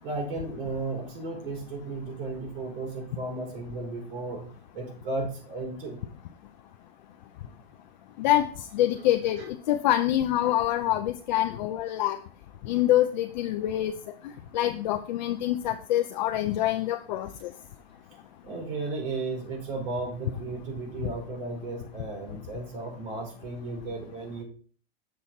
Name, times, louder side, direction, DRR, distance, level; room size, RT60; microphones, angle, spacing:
voice 1, 0.0-4.4 4.7-6.0 7.4-7.5 8.2-8.3 10.4-10.5 18.4-24.4, right 3 dB, 60° right, -1 dB, 4.6 m, -34 dB
voice 2, 8.7-12.2 12.7-13.9 14.5-17.5, left 13 dB, 45° left, 6 dB, 0.6 m, -25 dB
7.3 x 6.1 x 4.1 m, 0.43 s
supercardioid pair, 155°, 32 cm